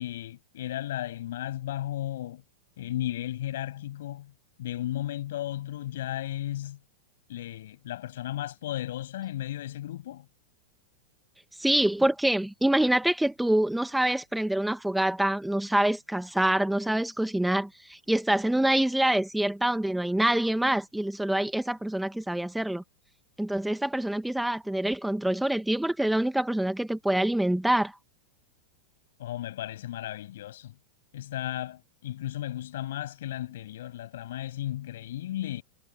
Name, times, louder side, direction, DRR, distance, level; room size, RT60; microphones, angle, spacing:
voice 1, 0.0-2.4 2.8-4.3 4.6-6.8 7.3-10.3 29.2-30.7 31.1-35.6, left 13 dB, 70° left, 7.0 m, -34 dB
voice 2, 11.6-22.8 23.4-27.9, right 1 dB, 5° right, 1.7 m, -26 dB
hypercardioid pair, 110°, 0 cm